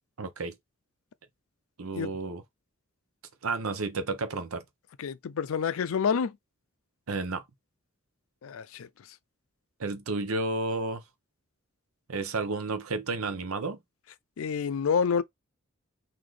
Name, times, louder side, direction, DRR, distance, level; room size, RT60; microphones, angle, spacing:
voice 1, 0.2-0.5 1.8-2.4 3.4-4.6 7.1-7.4 9.8-11.0 12.1-13.8, right 3 dB, 90° right, 0.8 m, -31 dB
voice 2, 5.0-6.4 8.4-8.9 14.4-15.2, left 6 dB, 75° left, 0.4 m, -28 dB
4.0 x 2.7 x 3.1 m
head